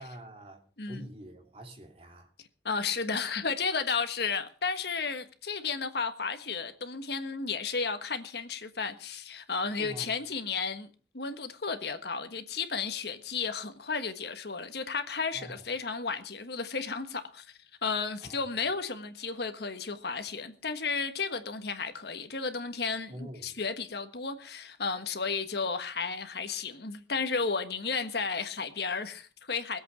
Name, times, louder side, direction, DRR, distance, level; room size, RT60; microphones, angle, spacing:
voice 1, 0.0-2.3 9.8-10.1 15.3-15.7 18.2-18.4 23.1-23.6, equal, 35° right, 2.8 m, -45 dB
voice 2, 2.6-10.9 11.1-29.8, left 5 dB, 65° left, 1.5 m, -33 dB
21.0 x 8.1 x 6.2 m
head